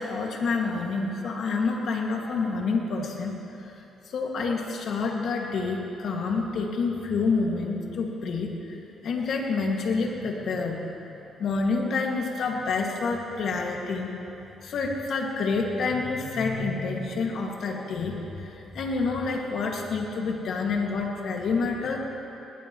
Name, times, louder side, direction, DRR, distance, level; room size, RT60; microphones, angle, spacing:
voice 1, 0.0-3.4 3.6-3.7 4.1-8.7 9.0-10.8 11.4-14.1 14.6-22.0, left 4 dB, 65° left, 0 dB, 2.1 m, -28 dB
20.0 x 18.5 x 3.1 m, 3.0 s
cardioid pair, 90°, 0 cm